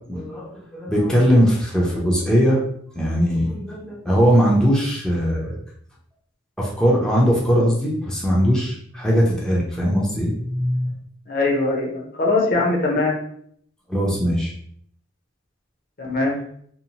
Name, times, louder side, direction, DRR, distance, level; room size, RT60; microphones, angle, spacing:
voice 1, 0.1-2.6 3.0-5.6 6.6-10.9 13.9-14.5, equal, 5° left, -5 dB, 0.5 m, -20 dB
voice 2, 11.3-13.2 16.0-16.4, left 2 dB, 50° left, 0 dB, 0.6 m, -21 dB
2.7 x 2.1 x 2.8 m, 0.63 s
head